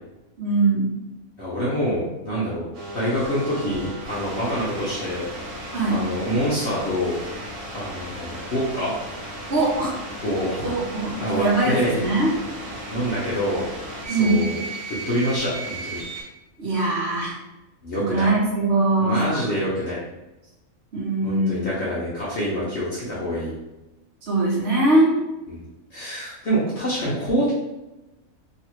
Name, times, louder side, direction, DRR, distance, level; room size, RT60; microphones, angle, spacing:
voice 1, 0.4-0.9 5.7-6.1 9.5-10.0 10.6-12.3 14.1-14.5 16.6-17.4 17.9-19.4 20.9-21.7 24.2-25.1, right 2 dB, 50° right, -4 dB, 1.1 m, -21 dB
voice 2, 1.4-2.7 2.9-5.3 5.9-7.2 7.7-8.9 10.2-10.7 11.2-12.0 12.9-13.7 14.0-14.6 15.1-16.0 17.8-18.3 19.0-20.0 21.2-23.5 25.5-25.6 25.9-27.5, equal, 55° left, -8 dB, 1.0 m, -26 dB
sound 1, 2.7-16.2, right 1 dB, 85° right, 1.4 m, -35 dB
3.1 x 2.8 x 2.9 m, 0.98 s
omnidirectional pair, 1.5 m